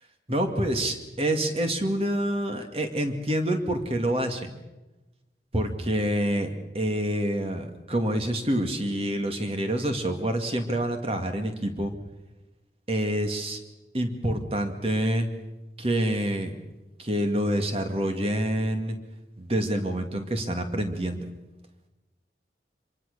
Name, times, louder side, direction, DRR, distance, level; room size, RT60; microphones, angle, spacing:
voice 1, 0.3-4.6 5.5-6.5 6.7-11.9 12.9-13.6 13.9-15.3 15.8-16.5 17.0-19.0 19.4-21.3, right 1 dB, 30° right, 6 dB, 2.2 m, -27 dB
25.5 x 23.0 x 6.7 m, 1.1 s
head